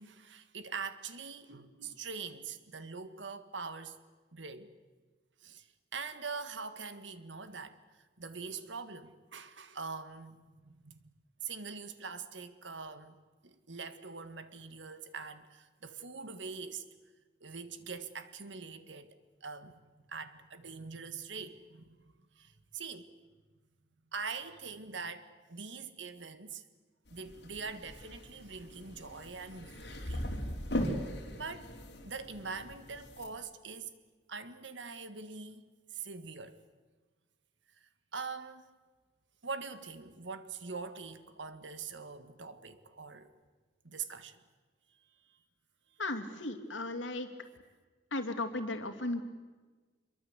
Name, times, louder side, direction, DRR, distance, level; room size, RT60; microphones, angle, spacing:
voice 1, 0.0-4.0 4.3-4.7 5.4-5.7 5.9-7.8 8.2-11.0 11.4-13.2 13.4-16.9 17.4-19.2 19.4-22.0 22.3-23.1 24.1-26.6 27.1-30.3 31.3-31.7 32.0-33.9 34.3-35.6 35.9-36.6 38.1-38.7 39.4-43.3 43.8-44.4 44.9-45.4, right 5 dB, 75° right, 1.8 m, -43 dB
sound 1, 27.1-33.3, equal, 60° left, 4.1 m, -39 dB
voice 2, 46.0-47.3 48.1-49.2, left 2 dB, 85° left, 2.7 m, -35 dB
26.0 x 23.0 x 8.2 m
head